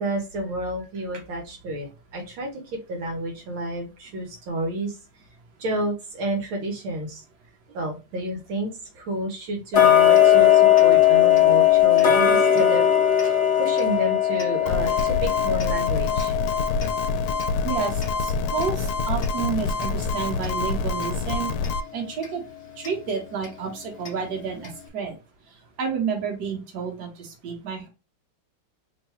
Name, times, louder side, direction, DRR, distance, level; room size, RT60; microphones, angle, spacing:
voice 1, 0.0-1.9 2.1-5.0 5.6-7.2 7.7-12.9 13.2-16.3, right 1 dB, 75° right, 1 dB, 1.7 m, -30 dB
Tick-tock, 9.7-20.6 21.0-21.1 21.6-21.7 22.2-22.3 22.8-22.9 23.4-23.5 24.1-24.2 24.6-24.7, left 11 dB, 50° left, 0.8 m, -20 dB
sound 1, 14.7-21.8, left 3 dB, 80° left, 1.4 m, -27 dB
voice 2, 17.6-21.5 21.9-22.4 22.8-25.2 25.8-27.9, right 6 dB, 55° right, 0 dB, 1.6 m, -30 dB
3.8 x 2.2 x 4.2 m, 0.29 s
omnidirectional pair, 2.3 m